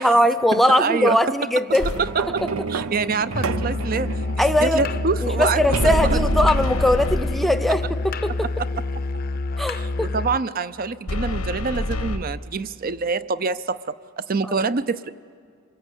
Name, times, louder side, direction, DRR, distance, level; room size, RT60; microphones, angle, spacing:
voice 1, 0.0-1.9 2.4-2.5 4.4-4.9 5.2-8.3 9.6-10.1 14.5-14.7, equal, ahead, 10 dB, 0.7 m, -20 dB
voice 2, 0.5-1.2 2.0-2.4 2.7-4.1 4.5-6.3 8.4-8.7 9.7-13.8 14.2-15.1, right 4 dB, 40° right, 15 dB, 0.5 m, -26 dB
sound 1, 1.7-8.5 9.1-9.2, right 4 dB, 80° right, 0.6 m, -32 dB
sound 2, 1.8-2.4 5.6-7.7 11.1-12.2, left 1 dB, 90° left, 1.1 m, -26 dB
Musical instrument, 3.3-10.5, left 2 dB, 40° left, 0.6 m, -28 dB
26.5 x 21.0 x 8.1 m, 2.1 s
head